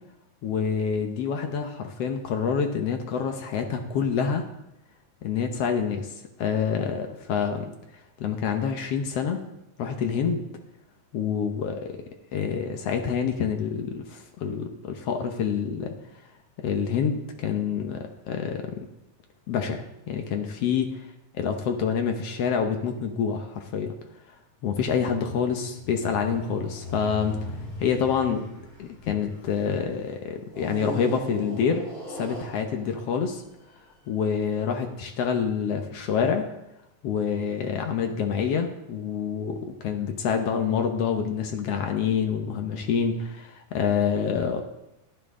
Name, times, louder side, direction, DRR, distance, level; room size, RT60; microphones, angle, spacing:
voice 1, 0.4-4.4 5.2-7.7 8.2-9.4 9.8-10.4 11.1-12.0 12.3-15.9 16.6-18.9 19.5-21.0 21.4-23.9 24.6-27.4 27.8-28.5 28.8-33.4 34.1-36.5 37.0-44.6, left 6 dB, 65° left, 5 dB, 1.7 m, -27 dB
sound 1, 25.0-29.7 30.5-33.9, equal, 30° left, 3.8 m, -39 dB
12.5 x 10.5 x 3.7 m, 0.88 s
omnidirectional pair, 3.6 m